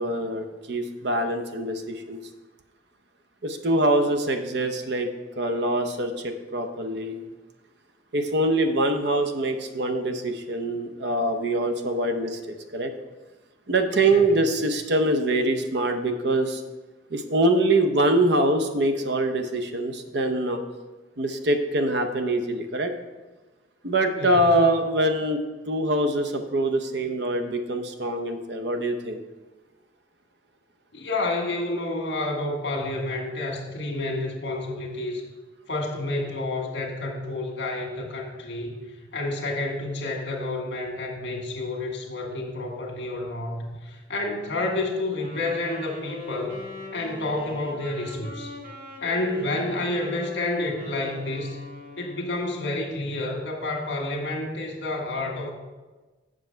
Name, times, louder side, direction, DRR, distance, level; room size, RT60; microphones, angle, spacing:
voice 1, 0.0-2.2 3.4-5.1 5.4-7.2 8.1-12.9 13.7-16.6 17.1-20.6 21.2-22.9 23.8-25.4 25.7-29.2, right 1 dB, 70° right, 7 dB, 0.8 m, -24 dB
voice 2, 30.9-35.2 35.7-38.8 39.1-46.6 46.9-48.6 49.0-51.6 52.0-55.5, left 2 dB, 70° left, 1 dB, 1.6 m, -29 dB
Wind instrument woodwind instrument, 45.1-52.4, left 2 dB, 50° right, 2.0 m, -40 dB
7.6 x 6.2 x 4.5 m, 1.2 s
head